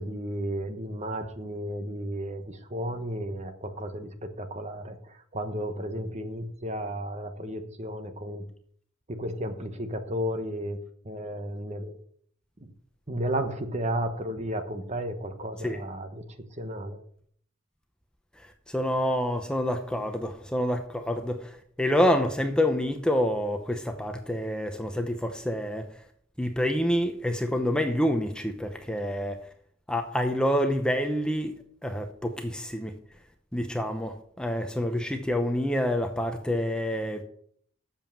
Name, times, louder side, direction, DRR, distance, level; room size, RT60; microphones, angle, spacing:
voice 1, 0.0-8.4 9.1-10.8 11.0-12.0 12.6-12.7 13.1-16.2 16.6-17.0, equal, 35° right, 1.1 m, -33 dB
voice 2, 18.4-25.9 26.4-29.4 29.9-31.5 31.8-32.9 33.5-37.2, equal, 5° left, 0.8 m, -27 dB
8.3 x 7.3 x 7.2 m
head